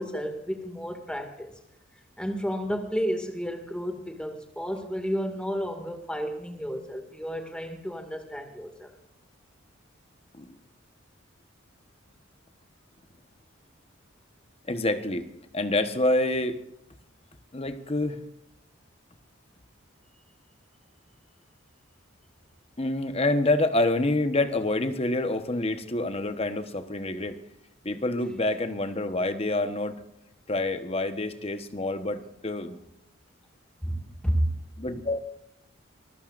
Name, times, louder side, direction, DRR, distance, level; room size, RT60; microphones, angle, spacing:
voice 1, 0.0-1.5 2.2-8.9 33.8-34.5, equal, 5° left, 4 dB, 2.1 m, -31 dB
voice 2, 14.7-15.3 15.5-16.6 17.5-18.2 22.8-27.4 27.8-30.0 30.5-32.8 34.8-35.2, left 2 dB, 30° left, 9 dB, 1.1 m, -27 dB
25.5 x 15.0 x 2.6 m, 0.81 s
head